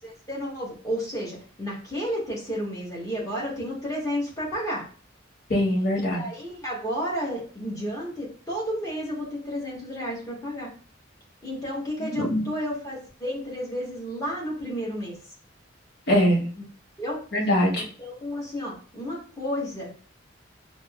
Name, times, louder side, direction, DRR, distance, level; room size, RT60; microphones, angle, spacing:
voice 1, 0.0-4.8 6.0-10.7 11.4-15.2 16.6-16.7 17.0-17.2 18.0-19.9, equal, 20° left, -5 dB, 1.3 m, -32 dB
voice 2, 5.5-6.3 12.0-12.5 16.1-16.5 17.3-17.8, equal, 55° left, -2 dB, 1.0 m, -22 dB
5.3 x 2.1 x 2.3 m, 0.42 s
head